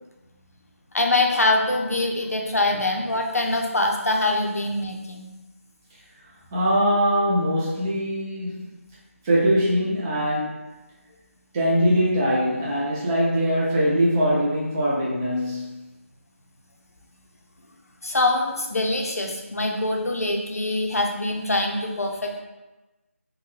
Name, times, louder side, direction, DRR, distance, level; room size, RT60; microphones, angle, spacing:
voice 1, 0.9-5.3 18.0-22.4, left 2 dB, 90° left, 2 dB, 0.6 m, -24 dB
voice 2, 6.5-8.7 9.2-10.6 11.5-15.8, equal, 15° right, -8 dB, 0.3 m, -22 dB
3.6 x 2.2 x 3.1 m, 1.1 s
figure-of-eight pair, 165°, 8 cm